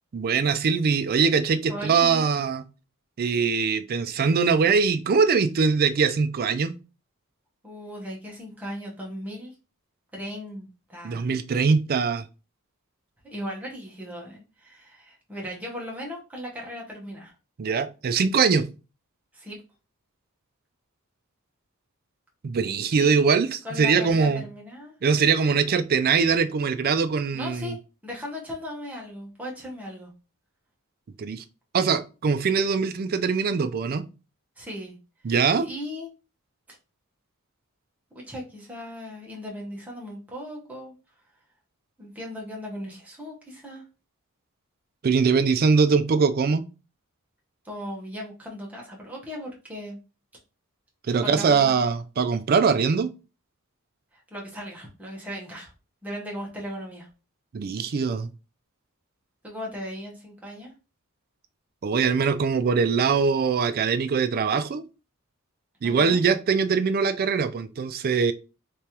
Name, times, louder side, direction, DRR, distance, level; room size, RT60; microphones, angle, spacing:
voice 1, 0.1-2.6 3.2-6.8 11.0-12.2 17.6-18.7 22.4-24.4 25.0-27.7 31.2-31.4 31.7-34.0 35.2-35.7 45.0-46.6 51.1-53.1 57.5-58.3 61.8-64.8 65.8-68.3, right 5 dB, 45° right, 0.4 m, -22 dB
voice 2, 1.7-2.3 7.6-9.5 10.1-11.3 13.2-17.3 19.3-19.6 23.0-23.2 23.6-24.9 27.3-27.8 28.0-30.1 34.6-35.0 35.6-36.1 38.1-40.9 42.0-43.8 47.6-50.0 51.2-51.9 54.1-55.7 56.0-57.1 59.4-60.7 65.8-66.2, equal, 5° right, 1.1 m, -37 dB
3.4 x 3.3 x 2.9 m
head